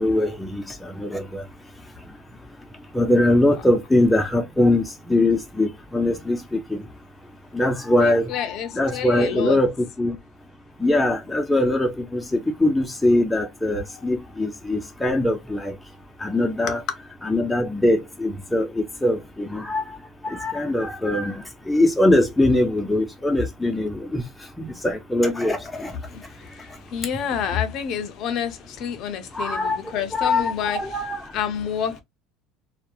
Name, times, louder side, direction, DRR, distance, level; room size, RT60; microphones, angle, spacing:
voice 1, 0.0-1.4 2.9-4.8 5.1-6.6 7.5-8.5 8.7-10.2 10.8-15.7 16.2-16.8 17.2-19.8 20.2-21.3 21.7-24.2 24.6-25.9 29.3-29.8 30.1-31.2, left 1 dB, 5° left, 0.4 m, -22 dB
voice 2, 8.0-9.6 26.1-31.0 31.3-32.0, left 8 dB, 50° left, 0.6 m, -29 dB
2.8 x 2.0 x 2.2 m
cardioid pair, 140°, 0 cm